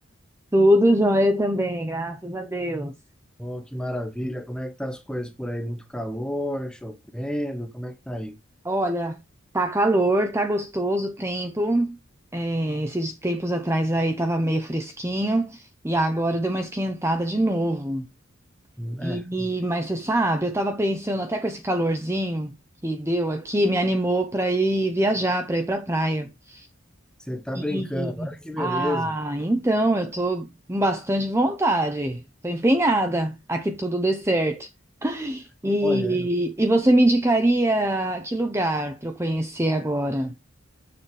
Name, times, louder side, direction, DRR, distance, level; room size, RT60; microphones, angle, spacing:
voice 1, 0.5-2.9 8.7-9.2 9.5-12.0 12.3-18.1 19.0-22.5 22.8-26.7 27.5-28.3 28.6-34.7 35.0-40.3, right 1 dB, 15° right, 0.7 m, -24 dB
voice 2, 3.4-8.4 18.8-19.5 27.3-29.1 35.8-36.3, equal, 5° left, 1.0 m, -31 dB
7.5 x 6.7 x 3.3 m
head